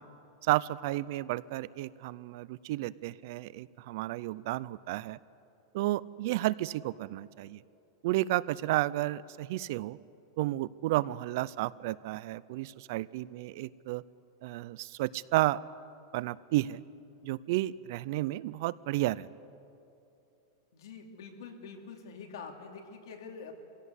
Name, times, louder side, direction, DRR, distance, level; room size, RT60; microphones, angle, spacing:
voice 1, 0.4-5.2 5.7-7.6 8.0-10.0 10.4-14.0 14.4-15.6 16.1-16.8 17.2-19.3, right 17 dB, 45° right, 20 dB, 0.4 m, -32 dB
voice 2, 20.7-23.5, left 5 dB, 75° left, 3 dB, 3.0 m, -46 dB
24.0 x 16.5 x 8.2 m, 2.8 s
supercardioid pair, 175°, 2 cm